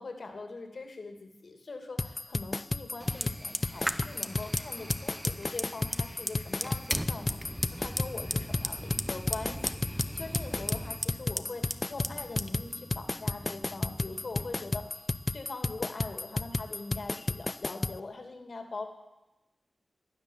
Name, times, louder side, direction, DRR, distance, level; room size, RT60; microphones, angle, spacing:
voice 1, 0.0-15.1 15.3-18.9, left 3 dB, 60° left, 5 dB, 2.4 m, -42 dB
sound 1, 2.0-18.0, left 2 dB, 35° left, 0.4 m, -33 dB
Fire, 3.0-14.8, equal, 5° right, 0.8 m, -38 dB
16.5 x 11.0 x 7.3 m, 1.0 s
cardioid pair, 60°, 0 cm